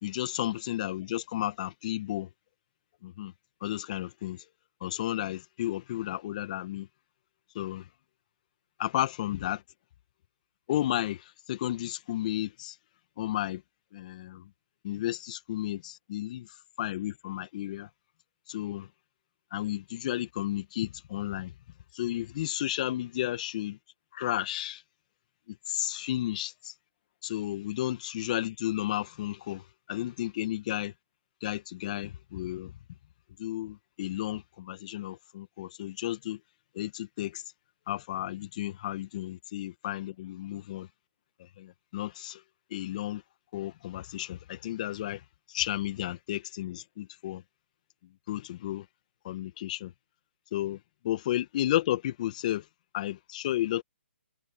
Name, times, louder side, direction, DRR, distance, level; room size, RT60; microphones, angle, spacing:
voice 1, 0.0-2.3 3.0-3.3 3.6-4.4 4.8-6.9 7.6-7.9 8.8-9.6 10.7-12.8 13.2-13.6 13.9-14.5 14.8-16.5 16.8-17.9 18.5-18.9 19.5-21.5 21.9-23.8 24.1-24.8 25.5-26.7 27.2-30.9 31.4-32.7 33.4-36.4 36.8-37.4 37.9-40.9 41.6-42.4 42.7-43.2 43.5-45.2 45.5-47.4 48.3-48.9 49.2-49.9 50.5-50.8 51.0-52.7 52.9-53.8, left 13 dB, 40° left, 1.7 m, -33 dB
hypercardioid pair, 150°, 7 cm